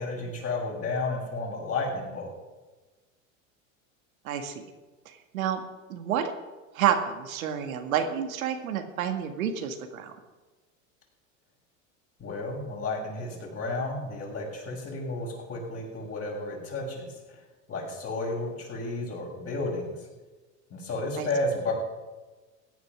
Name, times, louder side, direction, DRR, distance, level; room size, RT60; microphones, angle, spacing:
voice 1, 0.0-2.3 12.2-17.1 17.7-19.9 20.7-21.7, left 2 dB, 35° left, -1 dB, 6.3 m, -32 dB
voice 2, 5.9-6.3 6.7-10.1 21.2-21.3, right 9 dB, 85° right, 6 dB, 1.9 m, -29 dB
17.0 x 9.5 x 6.1 m, 1.2 s
hypercardioid pair, 100°, 41 cm